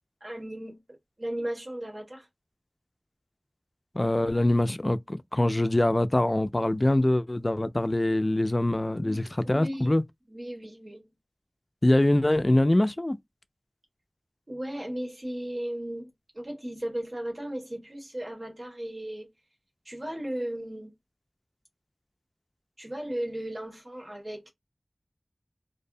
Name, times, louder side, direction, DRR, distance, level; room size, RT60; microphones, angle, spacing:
voice 1, 0.2-2.3 9.0-9.9 10.3-11.1 14.5-19.3 19.8-20.9 22.8-24.5, right 1 dB, 55° right, 1.3 m, -36 dB
voice 2, 3.9-10.0 11.8-13.2, left 1 dB, 35° left, 0.3 m, -24 dB
2.6 x 2.1 x 2.6 m
wide cardioid pair, 50°, 0 cm